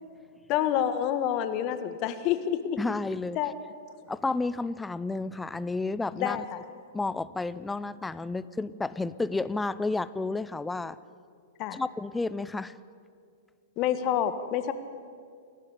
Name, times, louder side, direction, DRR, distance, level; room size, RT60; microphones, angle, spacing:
voice 1, 0.5-2.8 3.3-3.5 6.1-6.6 11.6-11.8 13.8-14.7, left 10 dB, 40° left, 10 dB, 1.6 m, -28 dB
voice 2, 2.8-3.4 4.1-6.4 6.9-11.0 11.7-12.8, left 3 dB, 10° left, 16 dB, 0.6 m, -31 dB
28.0 x 12.0 x 9.9 m, 2.3 s
hypercardioid pair, 105°, 0 cm